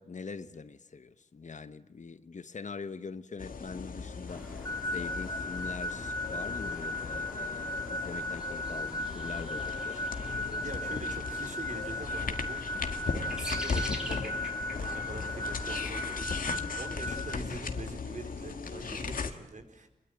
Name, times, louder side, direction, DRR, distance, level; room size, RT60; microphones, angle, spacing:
voice 1, 0.0-10.0, left 4 dB, 60° left, 1.2 m, -43 dB
sound 1, 3.4-19.3, left 4 dB, 85° left, 1.8 m, -38 dB
sound 2, 4.3-16.2, equal, 5° right, 3.8 m, -46 dB
sound 3, 4.7-17.3, left 2 dB, 25° left, 1.2 m, -36 dB
voice 2, 10.6-16.3 16.8-19.9, right 3 dB, 65° right, 4.4 m, -44 dB
25.0 x 22.5 x 9.2 m
wide cardioid pair, 80°, 14 cm